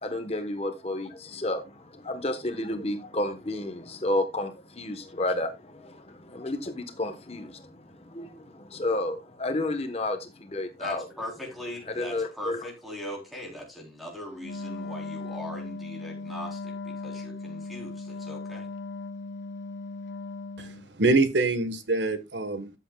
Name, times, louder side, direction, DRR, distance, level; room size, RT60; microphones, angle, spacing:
voice 1, 0.0-11.0 11.9-12.7, left 1 dB, 35° left, 1.1 m, -31 dB
voice 2, 10.8-18.7, left 1 dB, ahead, 3.6 m, -40 dB
Wind instrument woodwind instrument, 14.4-20.9, left 3 dB, 80° left, 0.8 m, -38 dB
voice 3, 20.6-22.7, right 3 dB, 75° right, 1.3 m, -25 dB
13.0 x 8.0 x 2.3 m
head